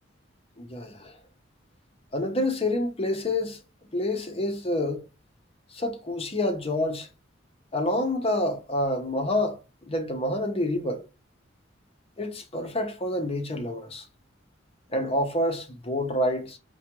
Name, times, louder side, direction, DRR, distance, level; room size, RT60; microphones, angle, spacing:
voice 1, 0.6-1.2 2.1-3.6 3.9-5.1 5.7-7.1 7.7-9.6 9.9-11.1 12.2-14.1 14.9-16.6, left 1 dB, 30° left, 0.7 m, -28 dB
4.7 x 2.2 x 3.0 m
head